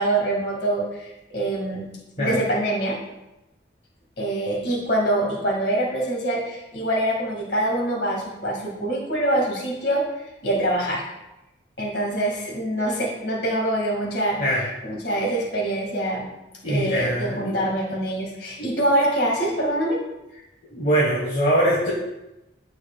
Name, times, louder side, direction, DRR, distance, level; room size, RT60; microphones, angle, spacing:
voice 1, 0.0-1.9 2.2-3.0 4.2-10.0 10.4-11.0 11.8-14.4 14.8-16.3 16.7-20.0, right 1 dB, 65° left, -3 dB, 2.0 m, -24 dB
voice 2, 16.6-17.5 18.6-18.7 20.7-21.9, right 1 dB, 40° left, -5 dB, 1.4 m, -22 dB
13.5 x 4.9 x 2.3 m, 0.95 s
head